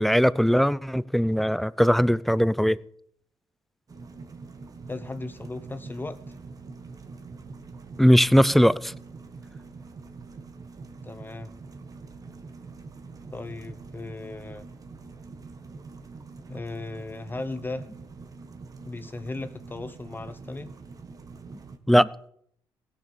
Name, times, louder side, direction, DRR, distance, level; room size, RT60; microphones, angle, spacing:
voice 1, 0.0-2.8 8.0-8.9 21.9-22.1, equal, ahead, 0.5 m, -20 dB
sound 1, 3.9-21.8, right 4 dB, 40° right, 1.5 m, -44 dB
voice 2, 4.9-6.2 11.0-11.5 13.3-14.7 16.5-17.9 18.8-20.7, left 2 dB, 20° left, 0.9 m, -36 dB
16.5 x 6.8 x 6.7 m
supercardioid pair, 60°, 9 cm